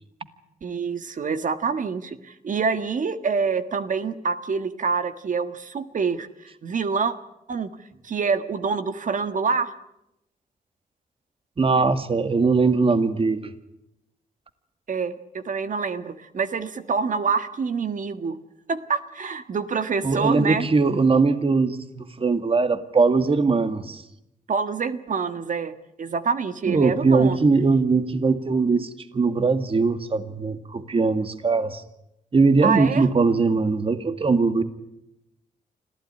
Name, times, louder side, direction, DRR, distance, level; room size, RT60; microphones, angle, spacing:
voice 1, 0.6-7.1 7.5-7.7 8.0-9.7 14.9-18.4 18.7-20.7 24.5-27.4 32.6-33.1, right 5 dB, 60° right, 10 dB, 1.6 m, -26 dB
voice 2, 11.6-13.5 20.0-24.0 26.7-31.8 32.3-34.6, right 4 dB, 40° right, 10 dB, 1.9 m, -21 dB
26.0 x 15.5 x 9.9 m, 0.86 s
cardioid pair, 80°, 15 cm